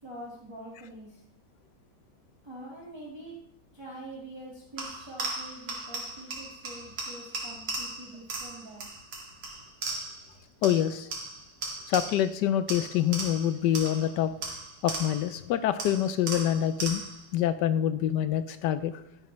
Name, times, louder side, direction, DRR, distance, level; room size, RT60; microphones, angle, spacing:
voice 1, 0.0-1.2 2.4-3.4 3.7-8.9, right 1 dB, 15° right, -4 dB, 1.7 m, -45 dB
sound 1, 4.8-10.3 10.6-12.4 12.7-15.4 15.8-17.3, right 3 dB, 80° right, 2.6 m, -37 dB
voice 2, 10.6-11.1 11.9-14.3 14.8-17.0 17.3-18.9, left 11 dB, 80° left, 12 dB, 1.2 m, -26 dB
11.5 x 10.5 x 3.1 m, 0.72 s
omnidirectional pair, 1.9 m